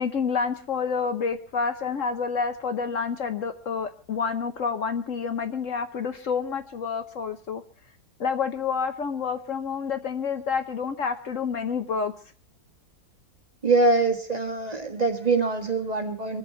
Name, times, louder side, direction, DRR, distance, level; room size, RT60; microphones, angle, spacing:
voice 1, 0.0-7.6 8.2-12.1, left 5 dB, 55° left, 8 dB, 1.2 m, -28 dB
voice 2, 13.6-16.4, right 3 dB, 25° right, 3 dB, 1.6 m, -23 dB
24.0 x 8.2 x 5.6 m, 0.42 s
omnidirectional pair, 1.7 m